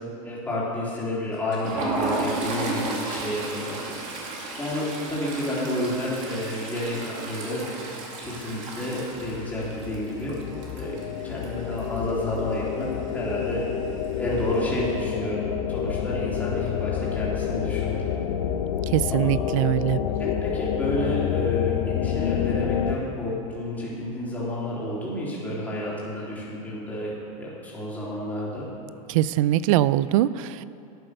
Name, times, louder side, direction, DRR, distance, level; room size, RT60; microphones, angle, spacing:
voice 1, 0.2-3.8 4.6-7.6 8.2-10.3 10.7-11.0 11.2-12.9 13.1-13.7 14.2-15.4 15.7-18.1 19.1-19.3 20.2-27.1 27.4-28.6, left 1 dB, 10° left, -8 dB, 3.5 m, -30 dB
Toilet flush, 1.3-12.1 12.4-12.6 12.9-13.1 14.0-14.6, right 2 dB, 40° right, 2.3 m, -33 dB
sound 1, 9.2-23.0, left 9 dB, 80° left, 0.8 m, -28 dB
voice 2, 18.9-20.0 29.1-30.6, right 14 dB, 65° right, 17 dB, 0.5 m, -22 dB
11.0 x 8.9 x 6.6 m, 2.7 s
supercardioid pair, 145°, 18 cm